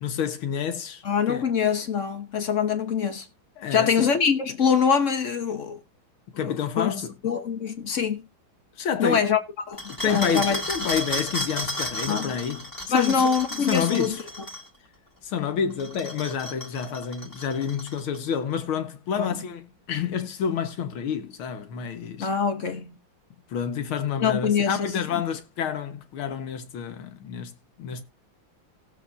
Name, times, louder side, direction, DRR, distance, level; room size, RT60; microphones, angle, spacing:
voice 1, 0.0-1.0 1.3-1.5 3.6-4.1 6.3-7.2 8.8-9.3 9.9-14.2 15.2-22.3 23.5-28.0, left 7 dB, 85° left, 2.1 m, -29 dB
voice 2, 1.0-3.3 3.7-5.8 6.3-6.9 7.2-8.2 9.0-10.6 12.1-12.4 12.9-14.2 19.2-19.4 22.2-23.0 24.2-24.9, left 6 dB, 45° left, 1.1 m, -24 dB
sound 1, 9.8-14.7 15.7-18.2, equal, 10° left, 1.5 m, -33 dB
18.0 x 7.2 x 2.6 m
omnidirectional pair, 2.2 m